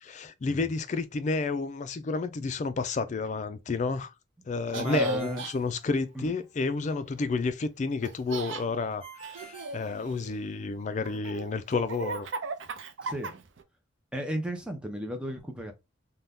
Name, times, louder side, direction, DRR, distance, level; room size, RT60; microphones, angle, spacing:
voice 1, 0.0-4.1 4.5-12.3, left 4 dB, 40° left, 0.3 m, -31 dB
voice 2, 4.7-5.5 6.1-6.2 13.0-13.3 14.1-15.7, equal, 5° right, 0.6 m, -34 dB
Laughter, 4.7-5.5 8.0-8.6 9.2-10.5 11.1-13.6, right 2 dB, 85° right, 0.5 m, -35 dB
Ringtone, 4.8-6.5 9.0-10.6, right 5 dB, 30° right, 1.1 m, -47 dB
2.6 x 2.2 x 3.4 m
head